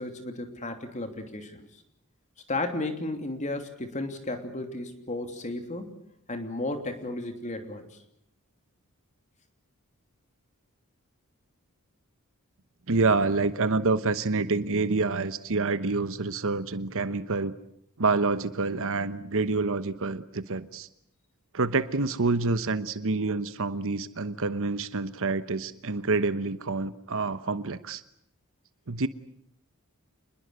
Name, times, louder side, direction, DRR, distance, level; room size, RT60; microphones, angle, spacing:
voice 1, 0.0-1.7 2.5-5.9 6.3-8.0, left 2 dB, 35° left, 6 dB, 3.0 m, -34 dB
voice 2, 12.9-17.5 18.0-20.9 21.5-28.0 28.9-29.1, right 3 dB, 65° right, 13 dB, 1.0 m, -27 dB
28.0 x 21.5 x 8.1 m, 0.71 s
head